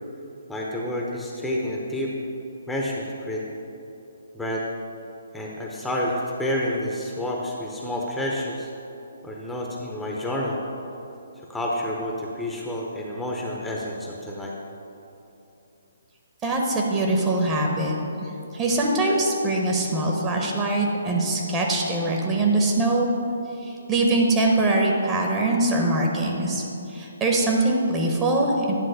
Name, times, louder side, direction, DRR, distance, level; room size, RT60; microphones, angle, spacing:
voice 1, 0.5-2.1 2.7-3.4 4.3-4.6 5.3-8.7 9.2-10.6 11.5-14.5, left 1 dB, 5° left, -3 dB, 0.8 m, -29 dB
voice 2, 16.4-17.9 18.5-23.1 23.6-28.7, right 2 dB, 20° right, -1 dB, 1.0 m, -23 dB
10.0 x 3.8 x 6.6 m, 2.9 s
figure-of-eight pair, 135°, 0 cm